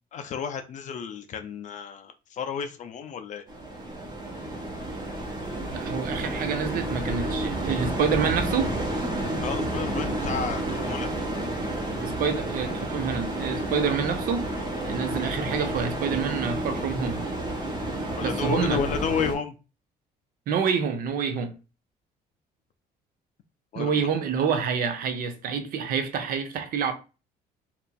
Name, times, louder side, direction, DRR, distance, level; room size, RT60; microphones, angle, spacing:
voice 1, 0.1-3.4 9.4-11.1 18.2-19.5 23.7-24.1, left 7 dB, 45° left, 0.4 m, -32 dB
sound 1, 3.5-19.3, right 1 dB, 25° right, 1.0 m, -30 dB
voice 2, 5.7-8.8 12.0-17.3 18.2-18.8 20.5-21.5 23.7-26.9, right 6 dB, 60° right, 0.5 m, -27 dB
2.9 x 2.5 x 2.2 m
cardioid pair, 110°, 17 cm